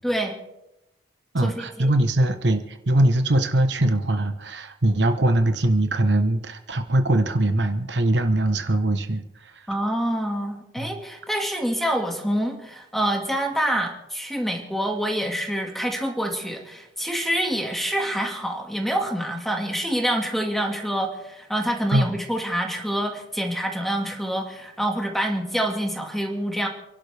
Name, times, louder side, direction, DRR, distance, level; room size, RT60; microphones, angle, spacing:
voice 1, 0.0-0.4 1.4-1.9 9.7-26.7, equal, ahead, 2 dB, 2.1 m, -26 dB
voice 2, 1.3-9.2 10.8-10.9 21.9-22.1, right 1 dB, 70° right, 7 dB, 1.2 m, -21 dB
29.0 x 11.5 x 3.5 m, 0.90 s
head